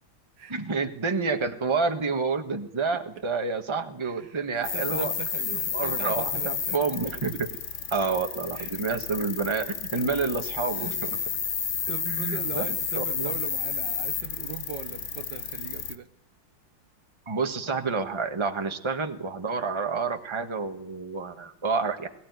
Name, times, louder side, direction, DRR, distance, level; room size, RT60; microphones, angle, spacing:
voice 1, 0.5-5.1 5.7-7.5 7.9-11.1 12.1-12.7 12.9-13.3 17.3-22.1, right 4 dB, 15° right, 5 dB, 1.4 m, -29 dB
voice 2, 4.0-6.8 7.3-7.4 8.5-8.7 10.7-11.4 11.9-16.1, right 9 dB, 70° right, 10 dB, 1.6 m, -40 dB
sound 1, 4.6-16.0, left 7 dB, 45° left, 1.2 m, -31 dB
22.0 x 15.0 x 9.6 m, 0.73 s
omnidirectional pair, 2.1 m